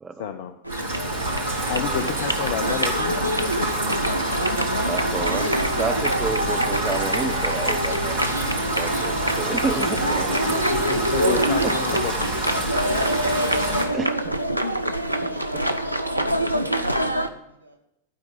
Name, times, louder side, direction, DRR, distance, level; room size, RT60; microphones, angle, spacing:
voice 1, 0.2-0.9 1.7-3.2 9.9-10.0 10.7-12.3, left 9 dB, 55° left, 8 dB, 0.6 m, -30 dB
sound 1, 0.6-17.3, right 1 dB, 90° right, 0.6 m, -25 dB
Rain, 0.7-13.8, right 1 dB, 55° right, 4.0 m, -28 dB
voice 2, 4.8-10.6 11.6-12.0 13.9-14.4 15.2-15.6, right 4 dB, 15° right, 8 dB, 0.8 m, -31 dB
voice 3, 10.7-11.5 11.9-12.3 15.3-15.8 16.9-17.8, right 1 dB, 90° left, 4 dB, 1.7 m, -33 dB
11.5 x 4.9 x 8.5 m, 0.82 s
figure-of-eight pair, 90°, 0 cm